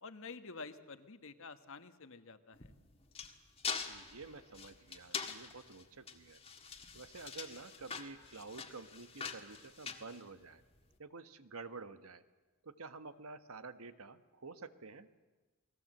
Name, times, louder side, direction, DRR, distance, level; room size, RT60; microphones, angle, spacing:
voice 1, 0.0-2.7, left 4 dB, 65° left, 10 dB, 1.4 m, -49 dB
sound 1, 2.6-10.8, left 5 dB, 25° left, 1.7 m, -44 dB
voice 2, 3.8-6.4 6.9-10.6 11.0-12.2 12.6-15.1, right 4 dB, 75° right, 11 dB, 1.3 m, -50 dB
29.0 x 20.0 x 7.7 m, 1.2 s
head